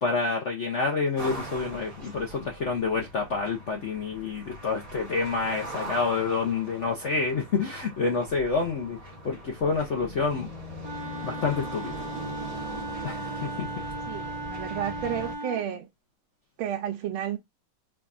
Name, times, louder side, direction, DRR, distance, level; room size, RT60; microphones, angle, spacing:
voice 1, 0.0-9.0 9.2-10.5 11.2-11.9 13.0-13.7, left 4 dB, 65° left, 0.7 m, -28 dB
sound 1, 1.2-15.4, right 2 dB, 25° right, 1.0 m, -40 dB
Wind instrument woodwind instrument, 10.8-15.7, right 1 dB, 55° right, 1.4 m, -37 dB
voice 2, 14.1-15.9 16.6-17.4, right 9 dB, 90° right, 1.5 m, -31 dB
5.0 x 2.3 x 2.5 m
omnidirectional pair, 2.3 m